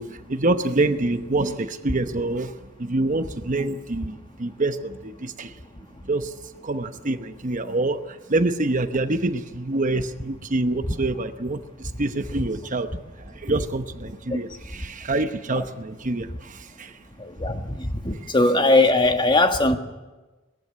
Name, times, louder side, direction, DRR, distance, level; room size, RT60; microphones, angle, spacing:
voice 1, 0.0-2.5 2.8-5.5 6.1-6.3 6.6-12.9 13.2-16.9 18.2-18.3, right 2 dB, 40° right, 9 dB, 0.9 m, -26 dB
voice 2, 17.2-19.8, left 2 dB, 25° left, 6 dB, 1.4 m, -20 dB
20.5 x 15.0 x 9.6 m, 1.2 s
head